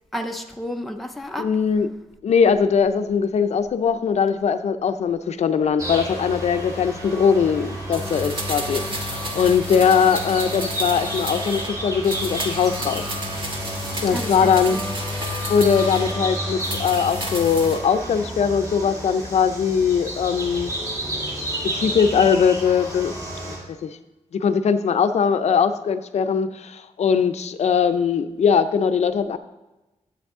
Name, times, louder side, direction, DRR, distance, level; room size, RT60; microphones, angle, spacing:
voice 1, 0.1-1.5 14.0-14.8, equal, ahead, 4 dB, 0.5 m, -31 dB
voice 2, 1.4-1.9 2.2-13.0 14.0-14.8 15.5-20.7 21.6-23.1 23.4-23.6 23.8-24.0 24.3-29.4, left 6 dB, 60° left, 9 dB, 0.5 m, -20 dB
sound 1, 5.8-23.6, right 1 dB, 25° right, 2.2 m, -31 dB
sound 2, 7.9-11.7 12.0-16.2 16.6-17.8 18.1-18.2, equal, 45° right, 1.2 m, -31 dB
10.5 x 8.0 x 3.6 m, 1.0 s
wide cardioid pair, 165°, 13 cm